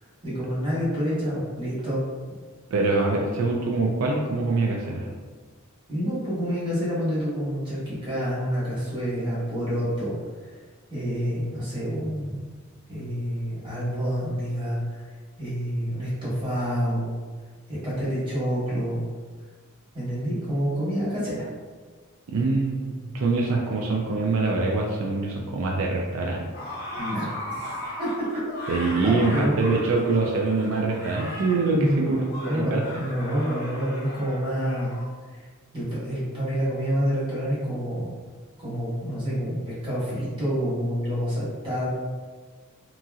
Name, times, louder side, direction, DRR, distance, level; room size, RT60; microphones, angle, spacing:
voice 1, 0.2-2.0 5.9-10.2 10.4-10.5 10.9-12.4 12.9-15.0 15.4-17.1 17.7-19.0 19.9-21.4 27.0-27.7 28.0-28.1 28.6-29.5 31.7-34.9 35.7-38.1 38.6-41.9, equal, 25° right, -9 dB, 1.3 m, -28 dB
voice 2, 2.7-5.1 22.3-26.5 28.7-32.8, right 3 dB, 70° right, -1 dB, 0.4 m, -24 dB
sound 1, 26.5-35.0, left 1 dB, 45° left, 0.8 m, -37 dB
2.9 x 2.7 x 2.3 m, 1.5 s
head